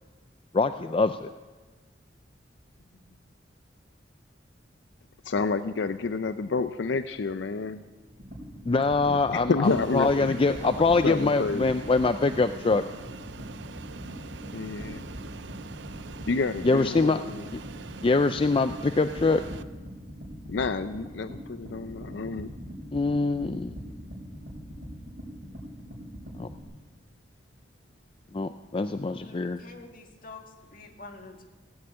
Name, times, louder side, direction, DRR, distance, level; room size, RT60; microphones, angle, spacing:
voice 1, 0.5-1.3 8.7-12.8 16.6-17.2 17.5-17.6 18.0-19.4 22.9-23.7 26.4-26.5 28.3-29.6, left 3 dB, 30° left, 10 dB, 0.4 m, -24 dB
voice 2, 5.2-7.8 9.0-10.4 11.0-11.8 14.5-15.0 16.3-17.5 20.5-22.5, left 4 dB, 85° left, 11 dB, 0.5 m, -29 dB
sound 1, 8.0-26.6, equal, 50° right, 6.5 m, -41 dB
Fixed-wing aircraft airplane, 9.6-19.6, right 5 dB, 85° right, 0.6 m, -44 dB
voice 3, 29.1-31.5, left 3 dB, 50° left, 4 dB, 2.0 m, -47 dB
17.5 x 9.4 x 8.7 m, 1.3 s
head